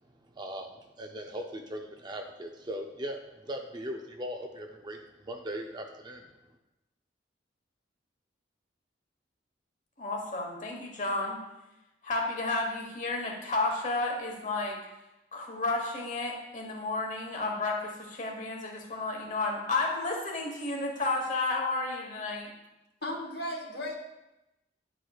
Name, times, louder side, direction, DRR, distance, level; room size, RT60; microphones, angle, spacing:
voice 1, 0.3-6.3, equal, 25° right, 3 dB, 0.4 m, -39 dB
voice 2, 10.0-11.4 12.0-14.8 15.3-22.5, left 2 dB, 40° left, 1 dB, 1.2 m, -32 dB
voice 3, 23.0-23.9, left 1 dB, 60° left, 1 dB, 1.0 m, -35 dB
9.6 x 4.5 x 2.3 m, 0.95 s
head